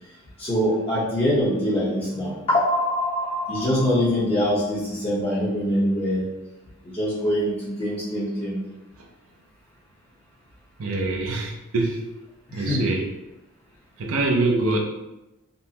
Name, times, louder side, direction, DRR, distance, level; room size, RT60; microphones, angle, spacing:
voice 1, 0.4-6.2 6.8-8.6 12.5-12.8, equal, 30° left, -8 dB, 0.9 m, -24 dB
voice 2, 10.8-12.0 12.5-13.1 14.0-14.8, right 2 dB, 80° right, 0 dB, 0.6 m, -24 dB
5.2 x 2.1 x 2.9 m, 1.0 s
head